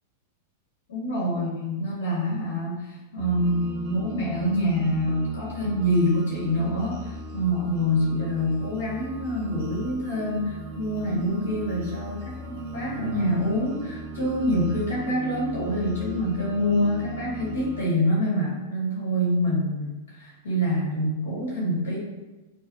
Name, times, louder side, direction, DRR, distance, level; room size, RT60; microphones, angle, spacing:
voice 1, 0.9-22.0, equal, 90° left, -5 dB, 1.4 m, -26 dB
sound 1, 3.2-17.9, right 2 dB, 50° right, 0.5 m, -38 dB
4.2 x 2.3 x 2.4 m, 1.1 s
supercardioid pair, 140°, 0 cm